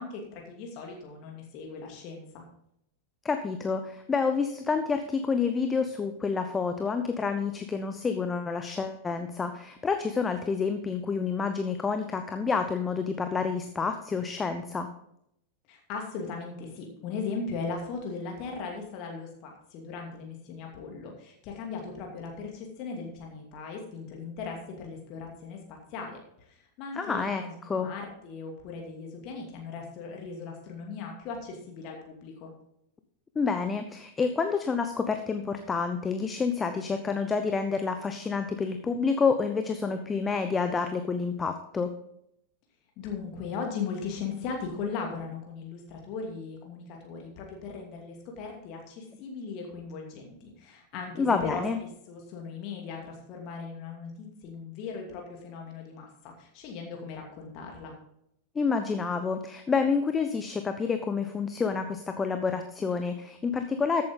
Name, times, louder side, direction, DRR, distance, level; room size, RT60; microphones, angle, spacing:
voice 1, 0.0-2.4 15.7-32.5 43.0-57.9, left 5 dB, 40° left, 1 dB, 2.5 m, -38 dB
voice 2, 3.2-14.9 26.9-27.9 33.3-41.9 51.2-51.8 58.5-64.0, left 5 dB, 15° left, 7 dB, 0.8 m, -28 dB
14.0 x 8.6 x 3.8 m, 0.75 s
figure-of-eight pair, 90°, 0 cm